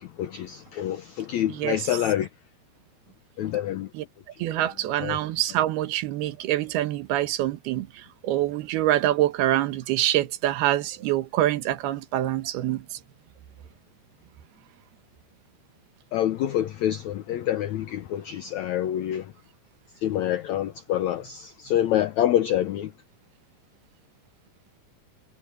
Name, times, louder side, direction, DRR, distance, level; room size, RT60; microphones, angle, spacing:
voice 1, 0.0-2.3 3.4-3.9 4.6-4.7 5.0-5.2 16.1-19.3 20.0-22.9, left 11 dB, 90° left, 1.6 m, -26 dB
voice 2, 1.5-1.8 3.9-4.0 4.4-7.9 8.2-12.8, right 14 dB, 80° right, 3.1 m, -25 dB
omnidirectional pair, 4.5 m